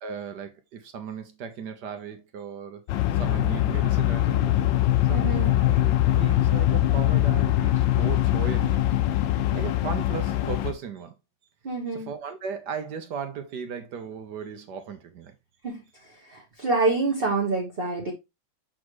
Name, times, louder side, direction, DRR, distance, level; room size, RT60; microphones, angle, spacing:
voice 1, 0.0-2.9 3.1-4.7 5.1-5.2 5.6-8.9 9.5-11.1 11.9-15.3, right 7 dB, 65° right, 1.3 m, -36 dB
sound 1, 2.9-10.7, left 13 dB, 75° left, 1.3 m, -22 dB
voice 2, 5.1-5.5 11.6-12.1 15.6-15.8 16.2-18.1, right 3 dB, 35° right, 1.1 m, -26 dB
7.4 x 4.2 x 3.1 m
omnidirectional pair, 2.2 m